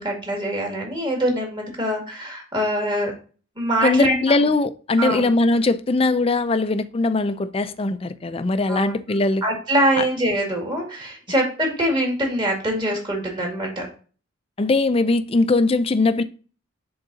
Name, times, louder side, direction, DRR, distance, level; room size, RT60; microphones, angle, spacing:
voice 1, 0.0-3.1 3.6-4.2 5.0-5.3 8.7-8.9 9.4-13.9, right 1 dB, 20° right, 2.1 m, -23 dB
voice 2, 3.8-9.4 14.6-16.2, left 3 dB, 25° left, 0.4 m, -20 dB
10.0 x 3.9 x 2.7 m
head